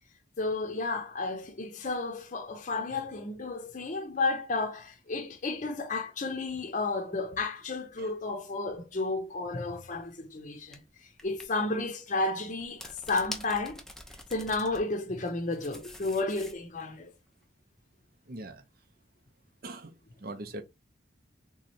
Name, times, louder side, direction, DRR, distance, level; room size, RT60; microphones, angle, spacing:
voice 1, 0.4-10.8 11.2-13.8 14.3-17.1, left 3 dB, 40° left, 0.7 m, -32 dB
sound 1, 9.7-9.9 10.7-10.8 11.2-11.5 12.6-14.8 15.2-16.8, left 1 dB, ahead, 0.5 m, -45 dB
voice 2, 18.3-18.6 19.6-20.6, right 2 dB, 50° right, 0.6 m, -42 dB
3.7 x 3.1 x 2.7 m
head